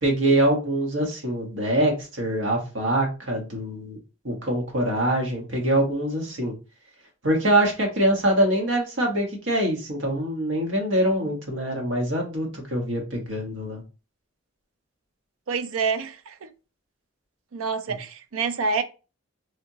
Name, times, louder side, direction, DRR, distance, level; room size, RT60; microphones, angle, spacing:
voice 1, 0.0-4.0 4.2-6.5 7.2-13.8, right 1 dB, 65° right, 1.2 m, -24 dB
voice 2, 15.5-16.5 17.5-18.8, right 5 dB, 85° right, 0.5 m, -27 dB
3.4 x 2.8 x 2.7 m
head